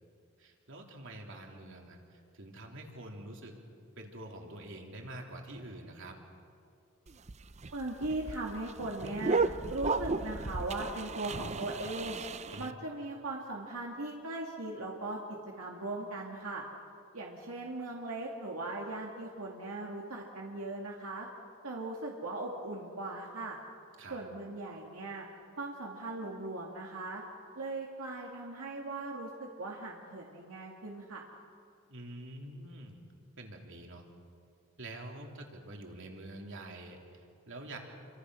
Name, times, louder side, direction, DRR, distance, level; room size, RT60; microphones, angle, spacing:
voice 1, 0.4-3.6 4.0-6.2 12.5-12.7 24.0-24.2 31.9-33.0 33.4-34.1 34.8-37.8, right 1 dB, 60° right, 2 dB, 3.3 m, -46 dB
sound 1, 7.1-12.7, right 4 dB, 30° right, 0.6 m, -34 dB
voice 2, 7.7-9.4 9.7-12.2 12.6-15.2 15.6-16.6 17.1-21.3 21.6-23.6 24.1-25.3 25.6-27.2 27.6-31.2, right 2 dB, 80° right, -1 dB, 2.4 m, -39 dB
29.0 x 25.0 x 6.4 m, 2.5 s
head